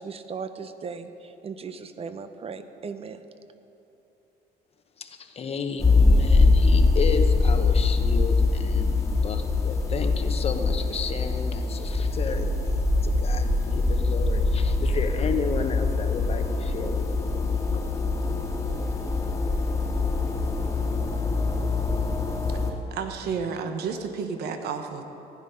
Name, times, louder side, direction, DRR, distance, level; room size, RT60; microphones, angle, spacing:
voice 1, 0.0-3.2, right 5 dB, 35° right, 10 dB, 0.8 m, -37 dB
voice 2, 5.0-12.5 13.0-17.8, left 5 dB, 35° left, 6 dB, 1.1 m, -33 dB
sound 1, 5.8-22.7, left 3 dB, 15° left, 1.8 m, -23 dB
voice 3, 22.7-25.0, right 5 dB, 75° right, 6 dB, 1.1 m, -31 dB
15.5 x 10.5 x 5.4 m, 3.0 s
cardioid pair, 110°, 17 cm